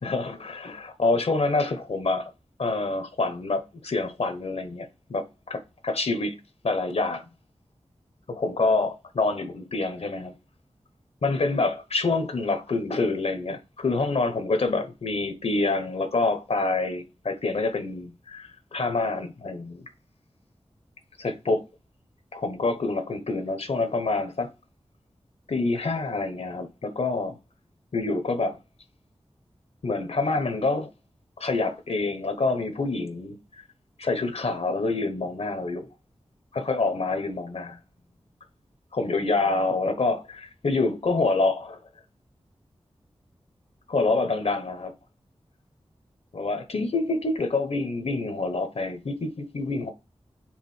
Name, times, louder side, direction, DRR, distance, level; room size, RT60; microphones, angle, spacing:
voice 1, 0.0-2.3 2.6-6.3 6.6-7.2 8.3-10.3 11.2-19.8 21.2-21.6 22.3-24.5 25.5-27.4 27.9-28.6 29.8-30.9 31.4-33.4 34.0-35.9 36.5-37.8 38.9-41.8 43.9-44.9 46.3-49.9, left 3 dB, 75° left, 1.1 m, -27 dB
4.8 x 3.7 x 5.6 m
wide cardioid pair, 70°, 11 cm